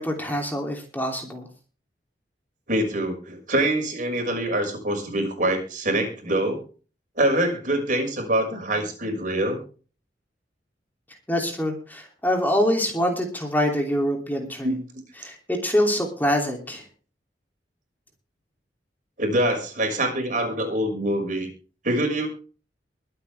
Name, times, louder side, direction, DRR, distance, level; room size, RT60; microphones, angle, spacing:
voice 1, 0.0-1.5 11.3-14.8 15.2-16.8, equal, 10° left, 2 dB, 3.0 m, -25 dB
voice 2, 2.7-6.6 7.2-9.6 14.6-14.8 19.2-21.5 21.8-22.3, right 1 dB, 50° right, 3 dB, 6.1 m, -24 dB
23.5 x 8.7 x 3.5 m, 0.37 s
head